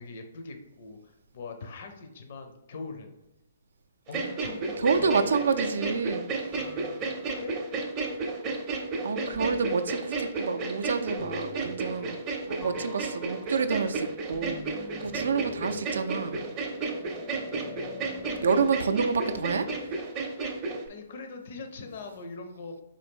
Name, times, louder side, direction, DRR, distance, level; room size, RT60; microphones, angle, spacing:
voice 1, 0.0-3.1 4.1-5.3 7.4-7.5 20.9-22.8, left 4 dB, 55° left, 5 dB, 0.6 m, -41 dB
sound 1, 4.1-20.9, right 3 dB, 25° right, 0.6 m, -32 dB
voice 2, 4.8-6.7 9.0-12.2 12.4-16.5 18.4-20.0, right 5 dB, 70° right, 9 dB, 0.3 m, -28 dB
sound 2, 4.9-5.8 6.5-7.6 9.3-9.9 11.2-12.3 12.6-20.0, left 7 dB, 15° left, 0.3 m, -47 dB
4.0 x 2.6 x 3.5 m, 0.94 s
figure-of-eight pair, 130°, 0 cm